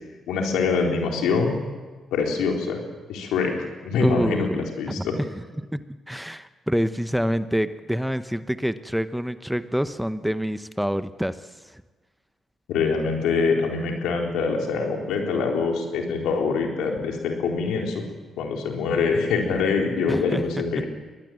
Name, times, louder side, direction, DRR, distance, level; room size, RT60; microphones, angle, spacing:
voice 1, 0.3-1.6 2.1-2.8 3.1-5.2 12.7-18.0 18.4-20.9, left 4 dB, 85° left, 1 dB, 4.0 m, -24 dB
voice 2, 4.0-5.3 5.6-5.8 6.1-11.4 11.7-11.8 20.1-20.4 20.7-20.8, equal, ahead, 12 dB, 1.0 m, -26 dB
23.0 x 19.5 x 7.8 m, 1.3 s
supercardioid pair, 55°, 0 cm